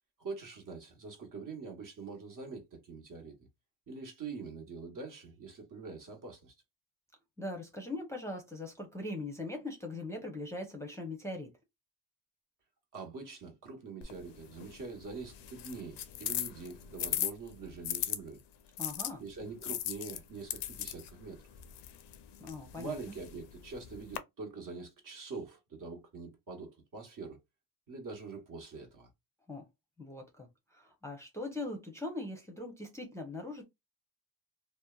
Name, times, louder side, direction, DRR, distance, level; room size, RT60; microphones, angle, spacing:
voice 1, 0.2-3.4 3.9-6.5 12.9-18.4 19.2-21.4 22.8-27.4 27.9-29.1, right 4 dB, 45° right, 1.0 m, -44 dB
voice 2, 7.4-11.5 18.8-19.2 22.4-23.2 29.5-29.6 30.0-33.6, left 2 dB, 5° left, 0.6 m, -41 dB
sound 1, 14.0-18.2 18.8-24.2, left 12 dB, 70° left, 0.5 m, -39 dB
2.7 x 2.1 x 2.3 m
cardioid pair, 85°, 43 cm